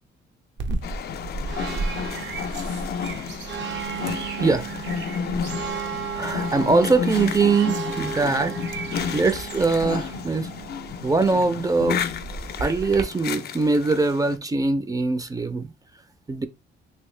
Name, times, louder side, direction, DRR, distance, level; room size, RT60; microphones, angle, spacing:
sound 1, 0.6-13.0, right 4 dB, 65° right, 0.7 m, -33 dB
sound 2, 0.8-14.4, left 7 dB, 55° left, 0.4 m, -32 dB
voice 1, 4.1-5.0 6.1-8.6 9.1-10.5 11.0-12.0 12.6-15.7 16.3-16.5, right 3 dB, 20° right, 0.4 m, -22 dB
3.0 x 2.8 x 3.2 m
cardioid pair, 90°, 20 cm